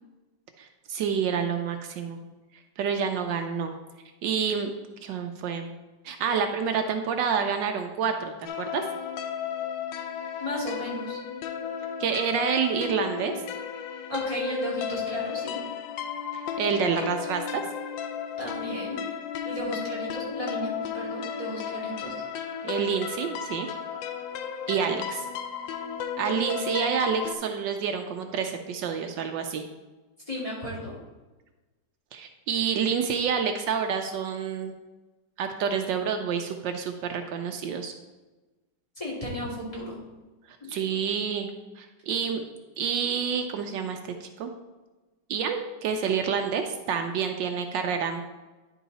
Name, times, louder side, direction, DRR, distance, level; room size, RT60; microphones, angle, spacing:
voice 1, 0.6-2.2 2.8-3.7 4.2-4.7 5.0-5.7 6.0-8.8 12.0-13.3 16.3-17.6 22.6-23.7 24.7-25.3 26.2-29.6 32.1-34.7 35.4-37.9 40.5-41.5 41.8-42.4 42.8-44.5 45.3-48.2, right 6 dB, 75° right, 5 dB, 1.3 m, -28 dB
sound 1, 8.5-27.4, left 7 dB, 80° left, 1.3 m, -34 dB
voice 2, 10.4-11.2 14.1-15.6 18.4-19.0 19.4-22.1 30.3-30.9 39.0-40.0 40.6-40.8, equal, 20° left, -6 dB, 2.5 m, -34 dB
10.0 x 4.7 x 4.0 m, 1.2 s
omnidirectional pair, 2.0 m